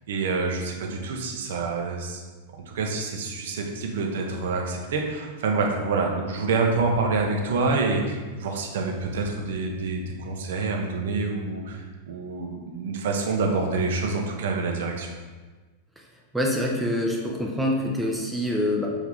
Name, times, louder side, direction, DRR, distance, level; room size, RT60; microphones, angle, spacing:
voice 1, 0.1-2.2 2.5-15.1, right 3 dB, 60° right, 1 dB, 0.5 m, -27 dB
voice 2, 16.3-18.9, left 1 dB, 5° right, -2 dB, 0.4 m, -25 dB
3.2 x 2.6 x 3.8 m, 1.3 s
figure-of-eight pair, 90°, 0 cm